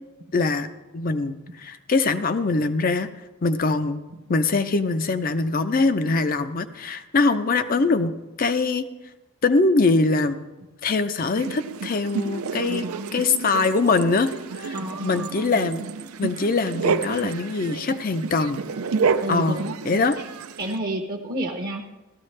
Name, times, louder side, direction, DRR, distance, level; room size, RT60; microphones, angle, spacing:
voice 1, 0.3-3.1 3.4-4.0 4.3-8.9 9.4-10.4 10.8-12.9 13.1-14.8 15.0-15.9 16.2-18.6 19.3-19.6 19.8-20.2, left 3 dB, 40° left, 11 dB, 0.5 m, -23 dB
sound 1, 11.4-20.8, right 5 dB, 90° right, 0.5 m, -30 dB
voice 2, 12.6-13.2 14.7-15.5 19.2-19.7 20.6-21.9, right 1 dB, 45° right, 2 dB, 0.7 m, -31 dB
16.0 x 13.0 x 3.2 m, 1.1 s
head